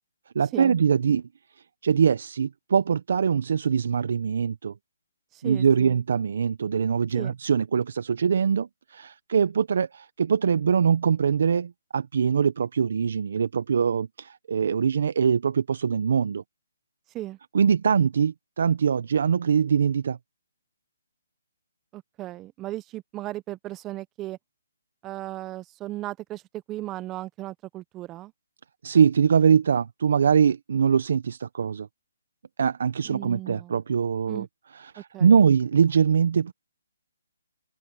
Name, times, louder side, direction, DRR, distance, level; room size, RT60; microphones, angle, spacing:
voice 1, 0.3-1.2 1.8-4.7 5.4-16.4 17.5-20.2 28.8-31.9 32.6-34.5 34.9-36.5, right 7 dB, 60° right, 0.9 m, -23 dB
voice 2, 5.3-6.0 7.1-7.3 17.1-17.4 21.9-24.4 25.0-28.3 33.0-33.8 34.3-34.5 35.0-35.4, right 16 dB, 15° right, 0.9 m, -36 dB
open air
hypercardioid pair, 155°, 0 cm